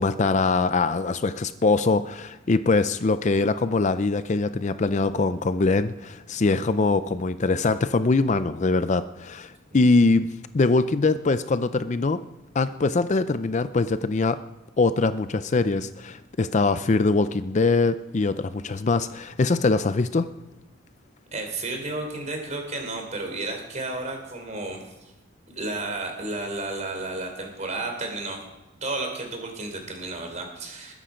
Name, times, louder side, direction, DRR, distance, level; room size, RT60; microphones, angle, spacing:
voice 1, 0.0-10.3 10.5-12.2 12.5-14.4 14.8-20.3, left 3 dB, 35° left, 12 dB, 0.5 m, -23 dB
voice 2, 21.3-25.1 25.5-28.4 28.8-30.9, right 2 dB, 35° right, 3 dB, 3.6 m, -32 dB
21.0 x 10.0 x 5.1 m, 1.0 s
head